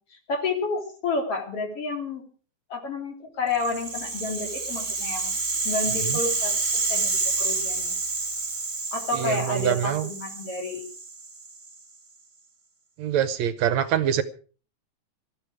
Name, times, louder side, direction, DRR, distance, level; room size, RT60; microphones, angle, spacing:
voice 1, 0.0-2.2 2.7-5.3 5.6-8.0 8.9-10.8, left 3 dB, 50° left, 3 dB, 4.0 m, -30 dB
Rattle (instrument), 3.5-11.7, right 3 dB, 20° right, 1.4 m, -29 dB
voice 2, 9.1-10.1 13.0-14.2, right 10 dB, 75° right, 13 dB, 2.0 m, -25 dB
19.0 x 13.5 x 4.9 m, 0.41 s
omnidirectional pair, 3.4 m